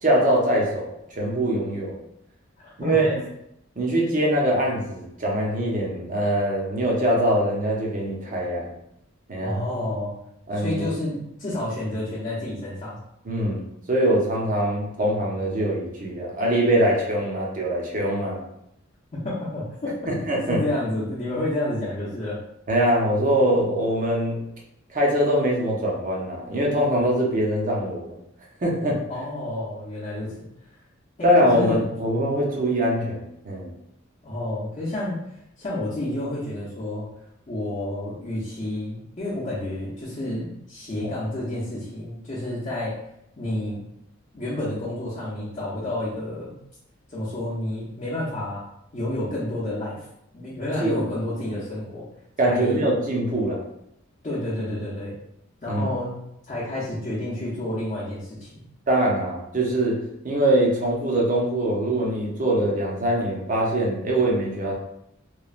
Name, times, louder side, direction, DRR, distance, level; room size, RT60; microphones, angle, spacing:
voice 1, 0.0-2.0 2.8-3.2 3.8-8.7 9.3-9.6 10.5-10.8 13.2-18.4 20.1-20.7 22.7-24.4 24.9-28.2 28.6-29.0 31.2-33.7 41.0-41.1 50.7-51.0 52.4-53.6 55.7-55.9 58.9-60.0 60.2-64.7, right 1 dB, 40° right, -2 dB, 0.6 m, -23 dB
voice 2, 2.6-3.1 9.4-10.1 10.5-13.0 19.1-20.1 20.5-22.4 29.1-30.3 31.4-31.8 34.2-35.2 35.6-37.1 37.5-43.0 43.4-43.8 44.3-46.6 47.1-48.6 48.9-50.1 50.3-52.1 52.4-52.8 54.2-55.1 55.6-56.1 56.5-58.6, left 1 dB, 35° left, -9 dB, 0.7 m, -30 dB
3.0 x 2.2 x 2.4 m, 0.79 s
head